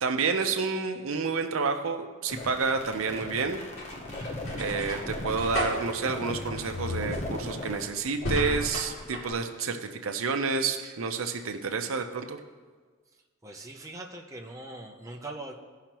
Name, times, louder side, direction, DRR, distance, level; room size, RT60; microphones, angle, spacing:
voice 1, 0.0-3.6 4.6-12.4, right 4 dB, 75° right, 6 dB, 0.7 m, -29 dB
sound 1, 2.3-7.9, left 2 dB, 35° left, 0.9 m, -39 dB
sound 2, 2.9-9.3, left 1 dB, 70° left, 2.6 m, -36 dB
voice 2, 13.1-15.5, right 2 dB, 15° right, 1 dB, 0.7 m, -42 dB
16.5 x 5.7 x 3.0 m, 1.5 s
head